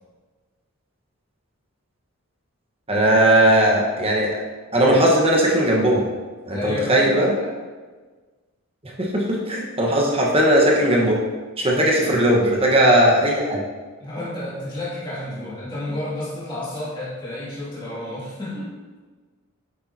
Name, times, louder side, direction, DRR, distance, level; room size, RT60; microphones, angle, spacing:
voice 1, 2.9-4.3 4.7-6.0 6.5-7.3 9.0-11.2 11.6-13.6, right 1 dB, 25° right, -2 dB, 1.2 m, -18 dB
voice 2, 6.5-7.5 11.7-12.0 14.0-18.7, left 1 dB, 20° left, -10 dB, 2.4 m, -31 dB
8.7 x 6.7 x 2.8 m, 1.4 s
head